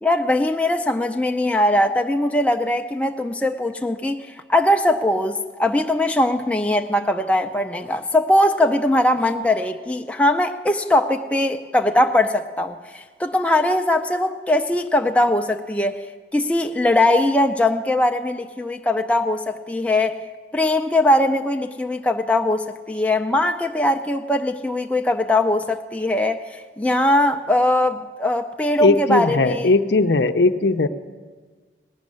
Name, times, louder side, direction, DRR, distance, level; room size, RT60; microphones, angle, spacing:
voice 1, 0.0-16.0 16.3-20.2 20.5-29.7, left 1 dB, 5° left, 4 dB, 0.5 m, -20 dB
voice 2, 28.8-30.9, left 3 dB, 75° left, 9 dB, 0.6 m, -18 dB
18.5 x 6.4 x 9.6 m, 1.4 s
head